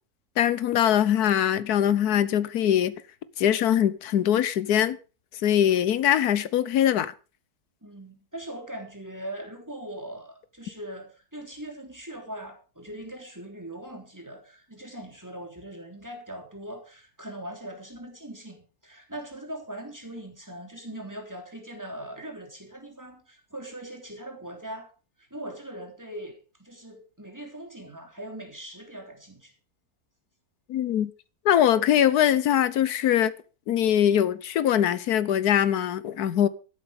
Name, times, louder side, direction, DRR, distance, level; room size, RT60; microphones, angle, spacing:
voice 1, 0.4-2.9 3.4-5.0 5.4-7.1 30.7-31.1 31.4-33.3 33.7-36.5, left 10 dB, 90° left, 1.4 m, -22 dB
voice 2, 7.8-24.9 25.2-29.5, right 1 dB, 10° right, 3.4 m, -40 dB
12.0 x 11.5 x 5.0 m
omnidirectional pair, 1.6 m